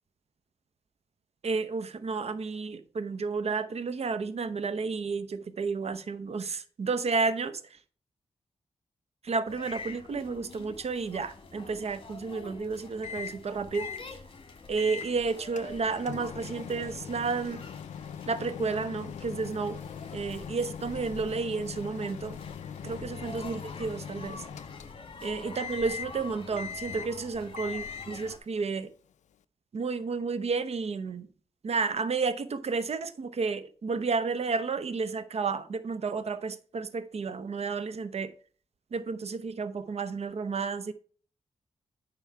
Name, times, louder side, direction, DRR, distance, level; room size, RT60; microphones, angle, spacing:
voice 1, 1.4-7.6 9.2-13.9 14.7-17.6 18.3-19.8 20.1-22.4 22.8-24.4 25.2-28.9 29.7-31.3 31.6-38.3 38.9-40.9, right 4 dB, 60° right, 0.8 m, -31 dB
sound 1, 9.5-28.4, left 4 dB, 45° left, 1.8 m, -46 dB
Microwave oven, 13.0-13.4 13.7-14.1 14.8-15.1 15.6-25.2 25.6-26.2 26.6-27.2 27.6-28.2, left 8 dB, 85° left, 0.4 m, -41 dB
9.4 x 5.3 x 4.6 m
cardioid pair, 65°, 12 cm